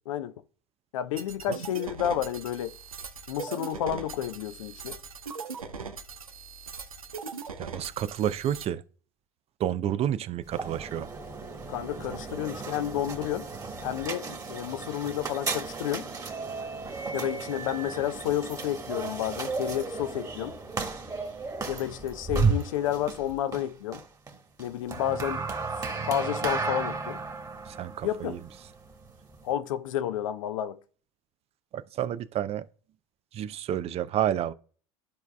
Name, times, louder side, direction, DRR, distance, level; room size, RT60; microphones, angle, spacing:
voice 1, 0.9-2.7 3.3-5.0 11.7-13.5 13.8-16.1 17.1-20.6 21.7-24.0 24.6-25.4 26.0-27.2 28.0-28.4 29.4-30.8, left 11 dB, 70° left, 0.6 m, -31 dB
sound 1, 1.2-8.7, right 5 dB, 90° right, 0.6 m, -40 dB
voice 2, 7.6-8.8 9.6-11.1 27.7-28.4 31.7-32.7 33.3-34.5, right 10 dB, 35° right, 0.5 m, -30 dB
sound 2, 10.4-29.5, right 4 dB, 20° right, 1.5 m, -34 dB
13.5 x 4.6 x 2.2 m
hypercardioid pair, 75°, 17 cm